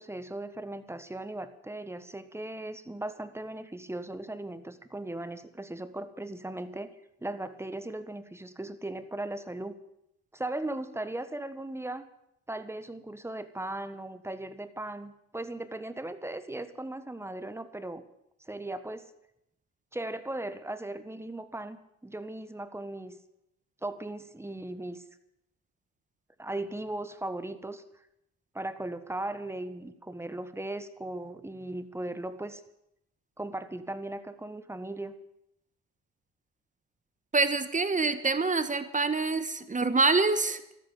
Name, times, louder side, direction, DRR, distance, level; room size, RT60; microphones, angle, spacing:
voice 1, 0.0-6.9 7.2-9.8 10.3-12.0 12.5-18.0 18.4-19.1 19.9-23.2 23.8-25.0 26.4-27.8 28.5-32.6 33.4-35.1, right 1 dB, 10° right, 11 dB, 1.4 m, -38 dB
voice 2, 37.3-40.6, right 3 dB, 25° right, 11 dB, 1.3 m, -26 dB
13.5 x 13.0 x 7.4 m, 0.79 s
cardioid pair, 90°, 30 cm